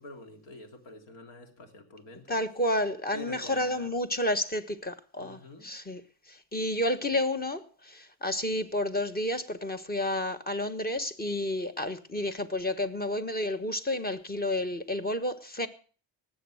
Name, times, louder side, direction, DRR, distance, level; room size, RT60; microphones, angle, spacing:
voice 1, 0.0-2.4 3.1-3.9 5.2-5.7, left 2 dB, 75° left, 3.0 m, -46 dB
voice 2, 2.3-6.0 6.3-15.7, left 1 dB, 20° left, 1.3 m, -30 dB
19.0 x 7.6 x 6.3 m
cardioid pair, 115°, 44 cm